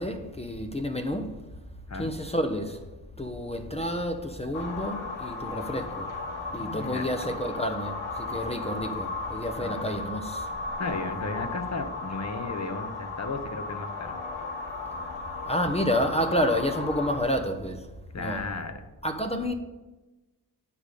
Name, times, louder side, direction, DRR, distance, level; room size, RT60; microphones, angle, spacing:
voice 1, 0.0-1.4 2.0-2.8 3.2-6.1 6.5-10.5 15.5-17.8 18.2-18.4 19.0-19.5, equal, 15° left, 0.8 m, -29 dB
sound 1, 4.5-17.2, left 3 dB, 85° left, 1.3 m, -35 dB
voice 2, 6.6-7.4 9.6-10.0 10.8-14.2 18.1-18.8, left 3 dB, 40° left, 1.1 m, -35 dB
9.5 x 3.4 x 6.7 m
cardioid pair, 55°, 43 cm